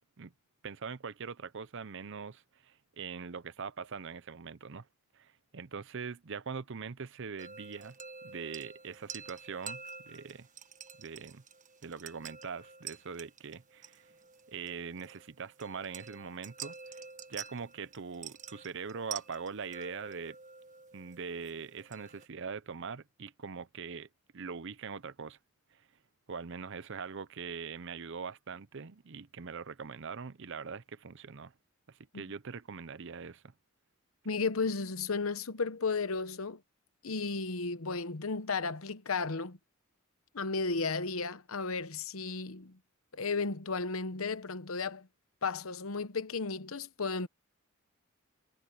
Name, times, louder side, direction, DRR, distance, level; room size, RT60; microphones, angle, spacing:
voice 1, 0.6-4.9 5.1-8.0 8.2-10.5 11.0-11.4 11.8-14.0 14.5-17.0 17.3-20.4 20.9-24.1 24.3-25.4 25.7-25.8 26.3-31.5 31.9-33.4, right 5 dB, 60° right, 0.7 m, -42 dB
sound 1, 7.4-22.3, right 6 dB, 35° right, 1.4 m, -48 dB
voice 2, 34.2-36.6 37.0-39.6 40.3-42.8 43.1-45.1 45.4-47.3, left 4 dB, 75° left, 1.0 m, -34 dB
head